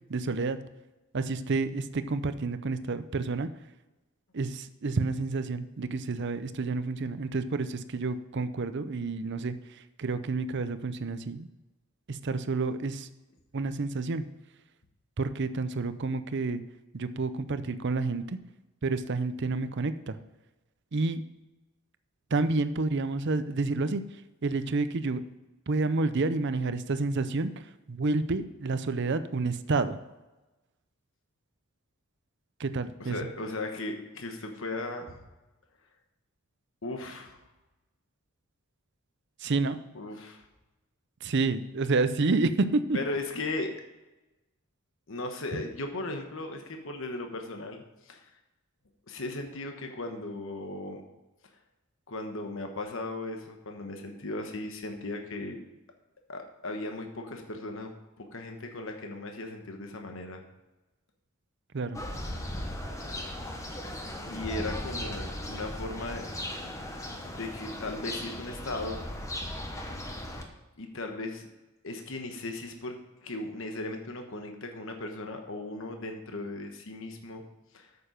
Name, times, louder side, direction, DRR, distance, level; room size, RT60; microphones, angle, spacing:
voice 1, 0.1-0.6 1.1-3.5 4.3-11.5 12.1-13.1 13.5-14.2 15.2-16.6 16.9-18.4 18.8-20.2 20.9-21.2 22.3-24.0 24.4-25.2 25.7-30.0 32.6-33.2 39.4-39.8 41.2-43.0 61.7-62.0, right 3 dB, 50° right, 12 dB, 0.6 m, -29 dB
voice 2, 33.0-35.1 36.8-37.4 39.9-40.4 42.9-43.7 45.1-48.3 49.1-51.0 52.1-55.6 56.3-57.9 58.2-60.4 64.3-66.3 66.6-66.8 67.3-69.0 70.8-71.5 71.8-77.4 77.7-77.9, left 2 dB, 60° left, 4 dB, 1.2 m, -37 dB
sound 1, 61.9-70.4, left 1 dB, 15° left, 1.0 m, -37 dB
8.8 x 6.9 x 5.1 m, 1.1 s
head